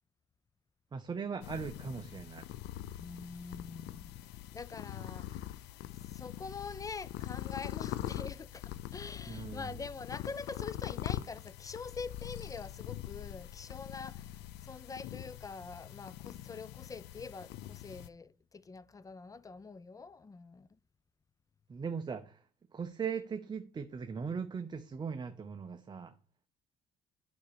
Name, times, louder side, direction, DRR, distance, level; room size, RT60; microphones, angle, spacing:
voice 1, 0.9-2.4 9.3-9.7 21.7-22.3 22.7-26.1, right 6 dB, 25° right, 0.7 m, -39 dB
sound 1, 1.4-18.1, left 13 dB, 80° left, 0.6 m, -43 dB
voice 2, 3.0-4.2 4.5-20.7, left 4 dB, 20° left, 0.5 m, -45 dB
9.3 x 4.3 x 6.8 m
cardioid pair, 110°, 17 cm